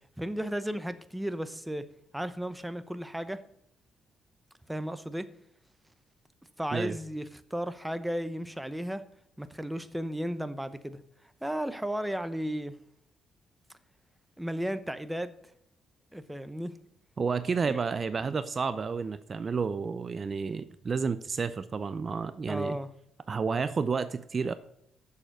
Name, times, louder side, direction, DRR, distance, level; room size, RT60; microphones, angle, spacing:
voice 1, 0.2-1.9 2.1-3.4 4.7-5.3 6.6-9.0 9.4-11.0 11.4-12.8 14.4-15.3 16.1-16.7 17.7-17.8 22.4-22.9, equal, 5° right, 0.8 m, -34 dB
voice 2, 17.2-22.8 23.3-24.5, right 5 dB, 40° right, 0.5 m, -31 dB
7.3 x 6.8 x 7.7 m
cardioid pair, 90°, 0 cm